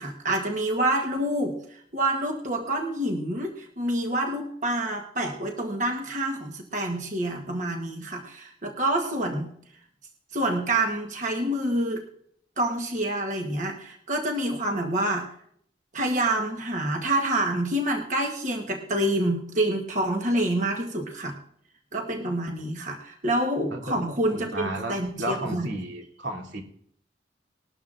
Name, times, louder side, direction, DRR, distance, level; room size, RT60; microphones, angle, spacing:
voice 1, 0.0-9.5 10.3-12.0 12.6-15.3 15.9-21.4 21.9-25.7, right 1 dB, 45° right, 2 dB, 1.2 m, -27 dB
voice 2, 24.5-26.6, right 1 dB, 85° right, 0 dB, 2.7 m, -33 dB
20.0 x 12.5 x 2.5 m, 0.68 s
head